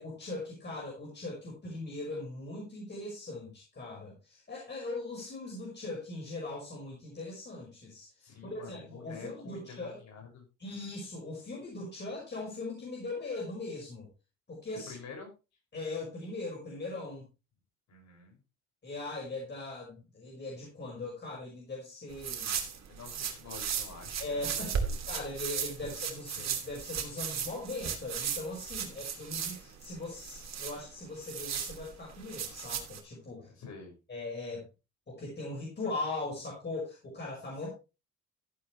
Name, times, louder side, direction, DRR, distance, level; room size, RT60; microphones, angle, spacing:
voice 1, 0.0-10.0 10.6-14.1 14.5-14.9 15.7-17.2 18.8-22.6 24.2-24.7 25.0-33.5 34.1-34.6 35.1-37.7, left 2 dB, 35° left, -2 dB, 5.7 m, -40 dB
voice 2, 8.2-10.4 14.9-15.3 17.9-18.4 22.8-25.0 33.5-33.9, left 5 dB, 65° left, 2 dB, 6.5 m, -48 dB
sound 1, 22.1-33.0, right 7 dB, 60° right, 2.9 m, -36 dB
14.0 x 8.9 x 3.3 m, 0.29 s
cardioid pair, 90°, 30 cm